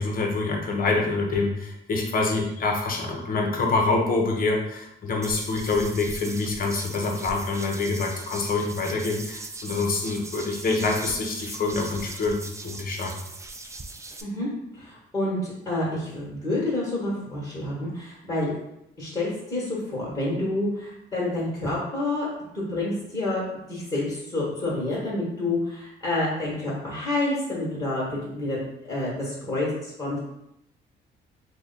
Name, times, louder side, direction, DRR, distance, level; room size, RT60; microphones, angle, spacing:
voice 1, 0.0-13.1, left 3 dB, 45° left, 1 dB, 0.8 m, -26 dB
sound 1, 5.2-14.2, right 2 dB, 15° right, 0.3 m, -39 dB
voice 2, 14.7-18.5 19.0-22.3 22.5-23.4 23.7-28.6 28.9-30.2, left 2 dB, 20° left, -7 dB, 1.3 m, -28 dB
3.0 x 2.2 x 3.9 m, 0.82 s
cardioid pair, 90°, 20 cm